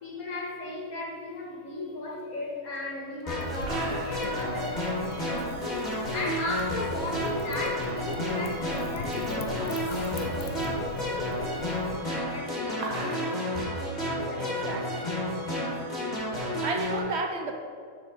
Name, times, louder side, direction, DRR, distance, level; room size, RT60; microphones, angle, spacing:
voice 1, 0.0-13.8 14.3-14.7, left 2 dB, 80° left, -1 dB, 1.9 m, -37 dB
sound 1, 2.8-2.9 3.2-3.3 3.5-4.4 5.5-7.2 8.1-8.4 8.7-8.8 9.5-10.7 12.1-13.7 14.8-15.0, right 3 dB, 80° right, 1.6 m, -42 dB
sound 2, 3.3-17.0, left 1 dB, 30° left, 2.3 m, -31 dB
Wind / Fire, 3.4-12.0, left 3 dB, 65° left, 1.0 m, -42 dB
voice 2, 14.4-15.1 16.6-17.5, right 3 dB, 60° right, 4 dB, 0.9 m, -32 dB
6.8 x 4.8 x 6.6 m, 2.1 s
omnidirectional pair, 1.5 m